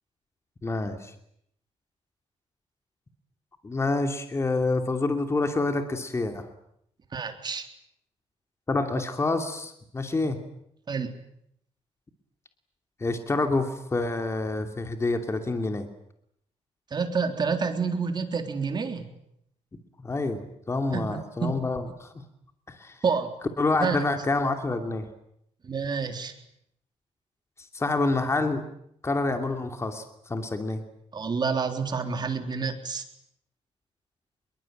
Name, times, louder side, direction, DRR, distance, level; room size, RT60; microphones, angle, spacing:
voice 1, 0.6-1.1 3.6-6.5 8.7-10.4 13.0-15.9 20.0-22.2 22.7-23.0 23.6-25.1 27.7-28.6 29.0-30.8, left 3 dB, 25° left, 6 dB, 2.8 m, -27 dB
voice 2, 7.1-7.7 10.9-11.1 16.9-19.0 20.9-21.5 23.0-23.3 23.7-24.0 25.6-26.3 31.1-33.1, right 5 dB, 40° right, 6 dB, 3.8 m, -28 dB
26.5 x 22.5 x 9.1 m, 0.74 s
cardioid pair, 125°, 12 cm